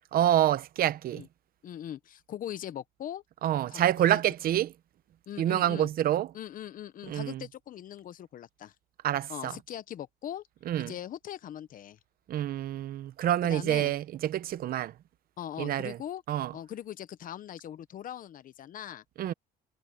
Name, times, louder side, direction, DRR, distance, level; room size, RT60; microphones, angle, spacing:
voice 1, 0.1-1.3 3.4-4.7 5.4-6.3 7.1-7.4 9.0-9.6 10.7-10.9 12.3-14.9 15.6-16.0 16.3-16.5 19.2-19.3, right 12 dB, 60° right, 0.9 m, -27 dB
voice 2, 1.6-3.2 3.7-4.2 5.3-5.9 6.3-8.7 9.3-10.5 10.8-12.0 13.4-13.9 15.4-16.2 16.5-19.0, left 11 dB, 55° left, 1.1 m, -41 dB
cardioid pair, 110°, 17 cm